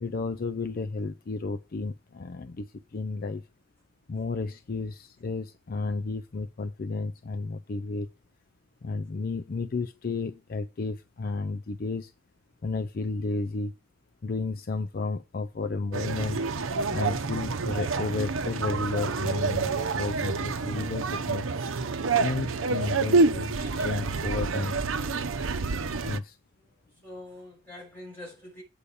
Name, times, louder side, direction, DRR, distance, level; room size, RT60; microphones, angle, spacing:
voice 1, 0.0-3.4 4.1-8.1 8.8-12.1 12.6-13.7 14.2-16.4 16.9-21.5 22.2-24.8 26.0-26.4, left 3 dB, 45° left, 0.4 m, -32 dB
sound 1, 15.9-26.2, right 4 dB, 80° right, 0.7 m, -28 dB
voice 2, 26.6-28.6, left 1 dB, 10° left, 6.4 m, -45 dB
8.4 x 5.0 x 7.0 m
head